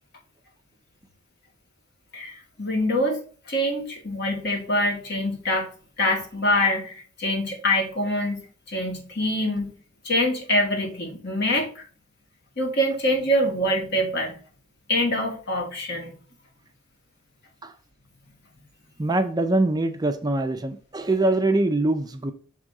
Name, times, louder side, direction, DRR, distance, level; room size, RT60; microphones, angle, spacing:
voice 1, 2.1-3.2 3.5-5.7 6.0-8.4 8.7-9.7 10.0-11.8 12.6-14.3 14.9-16.1, left 1 dB, 55° left, 2.0 m, -24 dB
voice 2, 19.0-22.3, right 2 dB, 20° right, 0.5 m, -23 dB
6.4 x 3.6 x 4.8 m
head